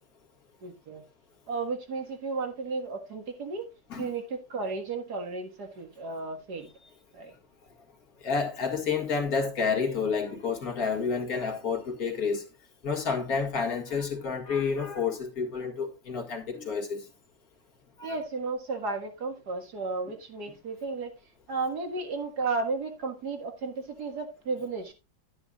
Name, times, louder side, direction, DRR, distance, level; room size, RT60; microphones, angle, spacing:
voice 1, 0.6-1.0 1.5-3.7 4.0-6.7 7.1-7.3 18.0-21.1 21.5-24.9, right 4 dB, 60° right, 2.2 m, -33 dB
voice 2, 8.2-12.4 12.8-17.0 18.0-18.2, left 5 dB, 50° left, 2.3 m, -29 dB
12.0 x 9.8 x 2.4 m
omnidirectional pair, 2.0 m